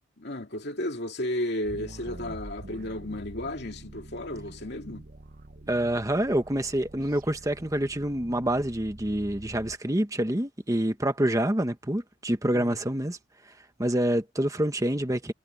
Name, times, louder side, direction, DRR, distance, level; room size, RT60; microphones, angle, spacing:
voice 1, 0.2-5.0 12.5-12.8, left 1 dB, 60° left, 2.7 m, -33 dB
sound 1, 1.6-9.8, right 1 dB, 50° right, 1.1 m, -45 dB
voice 2, 5.7-13.2 13.8-15.3, right 1 dB, 20° right, 1.2 m, -27 dB
head